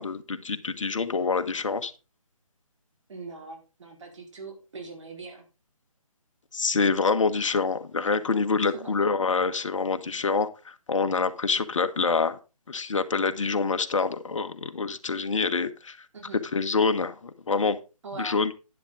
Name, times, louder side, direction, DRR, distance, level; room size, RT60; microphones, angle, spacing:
voice 1, 0.0-1.9 6.5-12.4 12.7-16.0 16.5-17.8 18.2-18.5, left 4 dB, 55° left, 8 dB, 1.4 m, -26 dB
voice 2, 3.1-5.4 8.8-8.9 16.1-16.4 18.0-18.4, right 3 dB, 55° right, 2 dB, 4.6 m, -41 dB
11.0 x 10.5 x 3.8 m, 0.30 s
figure-of-eight pair, 150°, 19 cm